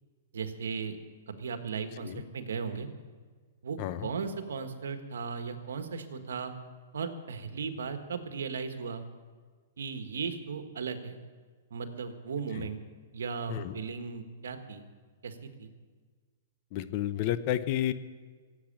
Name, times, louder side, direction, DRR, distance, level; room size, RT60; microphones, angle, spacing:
voice 1, 0.3-1.0 1.3-2.9 3.6-6.5 6.9-9.0 9.8-11.2 11.7-12.8 13.1-14.8 15.2-15.7, right 5 dB, 90° right, 8 dB, 1.5 m, -36 dB
voice 2, 3.8-4.1 12.6-12.7 13.5-13.7 16.7-17.9, left 12 dB, 45° left, 13 dB, 0.8 m, -31 dB
16.5 x 8.5 x 8.7 m, 1.5 s
hypercardioid pair, 140°, 0 cm